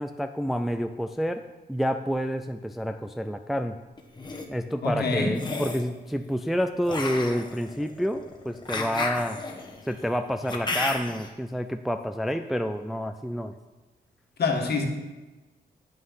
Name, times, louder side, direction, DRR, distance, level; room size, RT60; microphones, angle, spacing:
voice 1, 0.0-1.4 1.7-3.8 4.5-9.4 9.8-13.5, equal, ahead, 7 dB, 0.3 m, -29 dB
sound 1, 4.0-4.4 5.3-5.9 6.9-11.3, left 3 dB, 25° left, 1.2 m, -33 dB
voice 2, 4.8-5.4 14.4-14.9, left 3 dB, 65° left, 2 dB, 1.6 m, -25 dB
9.0 x 6.2 x 5.6 m, 1.2 s
cardioid pair, 105°, 18 cm